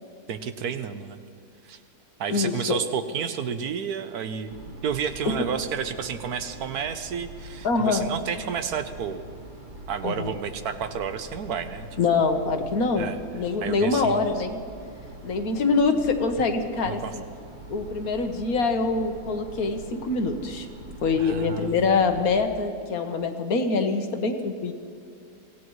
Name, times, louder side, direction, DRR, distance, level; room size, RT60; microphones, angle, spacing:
voice 1, 0.3-1.2 1.6-1.8 2.2-4.6 4.8-9.2 9.9-12.0 13.0-13.2 13.6-14.2 16.9-17.1 21.2-21.8, right 7 dB, 70° right, 9 dB, 1.3 m, -31 dB
voice 2, 2.3-2.8 5.3-5.4 7.6-8.1 10.0-10.4 12.0-14.6 15.2-17.2 17.7-20.7 21.0-24.7, left 4 dB, 65° left, 6 dB, 1.6 m, -24 dB
sound 1, 4.5-22.5, right 1 dB, 30° right, 1.2 m, -43 dB
24.5 x 16.5 x 3.1 m, 2.4 s
omnidirectional pair, 1.7 m